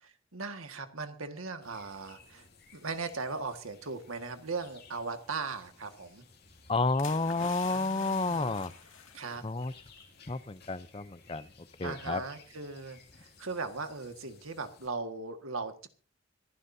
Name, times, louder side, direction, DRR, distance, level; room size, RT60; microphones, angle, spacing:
voice 1, 0.3-2.5 2.7-6.2 7.7-8.6 9.1-9.4 11.8-15.9, right 4 dB, 85° right, 7 dB, 1.8 m, -38 dB
sound 1, 1.6-14.9, left 5 dB, 50° left, 2.5 m, -58 dB
voice 2, 6.7-8.7 9.4-9.7 10.3-11.5 11.8-12.2, left 3 dB, 25° left, 14 dB, 0.6 m, -30 dB
sound 2, 7.0-10.0 10.3-10.6, left 6 dB, 75° left, 2.2 m, -47 dB
25.0 x 11.5 x 2.7 m, 0.35 s
head